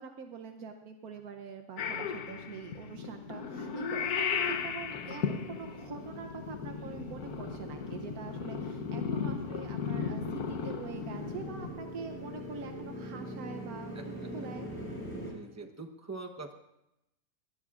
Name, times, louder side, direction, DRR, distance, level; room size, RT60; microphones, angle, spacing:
voice 1, 0.0-14.7, right 5 dB, 80° right, 5 dB, 1.3 m, -44 dB
Purr / Meow, 1.8-11.7, left 6 dB, 85° left, 1.4 m, -36 dB
Motorcycle, 2.6-15.3, equal, 10° left, 7.3 m, -44 dB
voice 2, 13.9-14.5 15.2-16.6, right 3 dB, 15° right, 3 dB, 0.8 m, -44 dB
22.0 x 18.0 x 2.5 m, 0.89 s
omnidirectional pair, 1.5 m